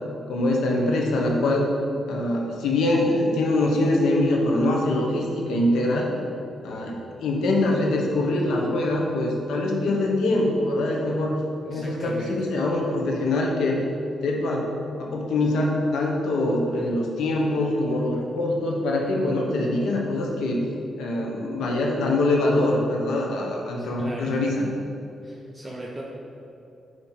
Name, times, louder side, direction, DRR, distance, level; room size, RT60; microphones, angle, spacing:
voice 1, 0.3-1.7 2.1-6.1 6.6-11.4 11.7-13.8 14.2-14.7 15.0-20.6 21.0-24.7, left 2 dB, 85° left, -1 dB, 1.2 m, -23 dB
voice 2, 11.6-12.5 23.8-24.4 25.2-26.0, right 1 dB, 20° right, -4 dB, 0.9 m, -38 dB
8.7 x 3.2 x 5.8 m, 2.7 s
cardioid pair, 85°, 0 cm